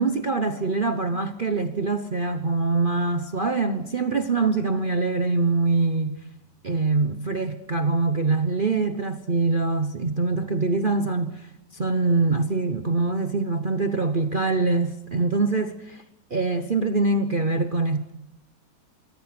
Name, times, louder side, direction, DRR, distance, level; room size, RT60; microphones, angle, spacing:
voice 1, 0.0-6.2 6.6-16.0 16.3-18.1, right 3 dB, 35° right, 0.9 m, -24 dB
26.0 x 23.0 x 6.0 m
omnidirectional pair, 2.0 m